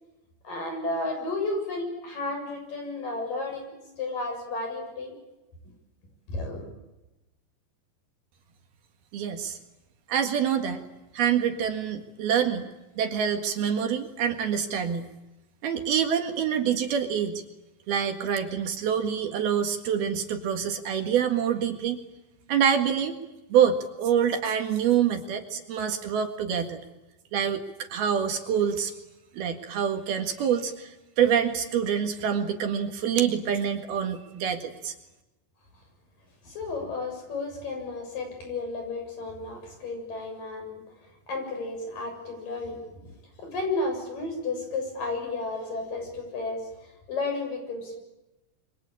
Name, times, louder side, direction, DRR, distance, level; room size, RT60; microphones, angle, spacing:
voice 1, 0.4-5.1 6.3-6.7 36.4-40.8 41.3-42.8 43.4-48.0, left 3 dB, 50° left, 4 dB, 8.6 m, -32 dB
voice 2, 9.1-9.6 10.1-10.8 11.1-12.7 13.0-15.1 15.6-17.4 17.9-22.0 22.5-23.2 23.5-26.8 27.3-27.6 27.9-28.9 29.3-34.9, right 8 dB, 65° right, 6 dB, 3.6 m, -26 dB
27.5 x 24.5 x 8.8 m, 1.0 s
omnidirectional pair, 4.9 m